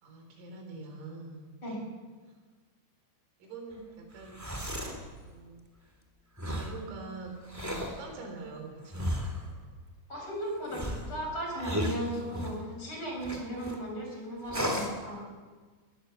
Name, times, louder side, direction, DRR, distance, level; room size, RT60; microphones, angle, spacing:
voice 1, 0.0-1.5 3.4-4.4 5.2-5.6 6.5-7.4 7.8-9.2, right 3 dB, 85° right, 3 dB, 6.5 m, -44 dB
sound 1, 4.2-5.0 6.4-6.8 7.4-8.0 8.9-9.5 10.7-12.6 13.2-13.8 14.5-15.0, equal, 10° right, 0.8 m, -34 dB
voice 2, 10.1-15.2, right 1 dB, 25° left, -1 dB, 6.7 m, -36 dB
20.5 x 19.5 x 7.0 m, 1.4 s
omnidirectional pair, 5.8 m